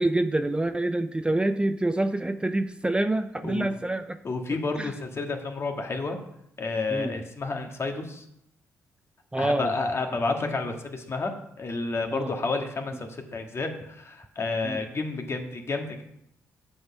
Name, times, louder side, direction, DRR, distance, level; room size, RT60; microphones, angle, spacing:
voice 1, 0.0-4.2 4.7-4.9 6.9-7.1 9.3-9.7 12.1-12.3 14.6-14.8, right 2 dB, 15° right, 10 dB, 0.6 m, -26 dB
voice 2, 3.4-3.7 4.2-6.2 6.6-8.2 9.4-16.0, left 3 dB, 40° left, 3 dB, 1.8 m, -30 dB
7.7 x 6.5 x 5.5 m, 0.74 s
hypercardioid pair, 45°, 7 cm